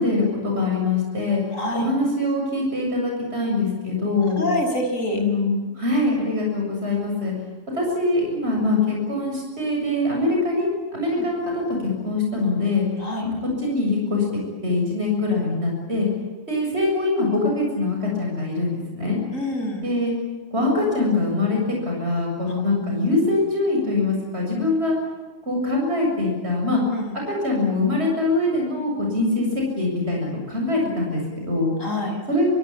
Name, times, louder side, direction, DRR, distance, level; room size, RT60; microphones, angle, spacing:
voice 1, 0.0-1.4 1.7-4.4 5.1-7.3 7.7-11.6 12.0-12.8 13.2-14.2 14.6-16.1 16.5-19.2 19.8-20.1 20.5-21.6 21.9-25.0 25.5-26.8 27.3-31.7 32.3-32.5, left 2 dB, 55° right, 0 dB, 7.5 m, -23 dB
voice 2, 1.5-1.9 4.4-5.2 11.2-11.3 13.0-13.3 19.3-19.9 26.9-27.1 31.8-32.2, left 1 dB, 90° left, 3 dB, 6.4 m, -26 dB
26.0 x 23.5 x 8.8 m, 1.3 s
omnidirectional pair, 1.3 m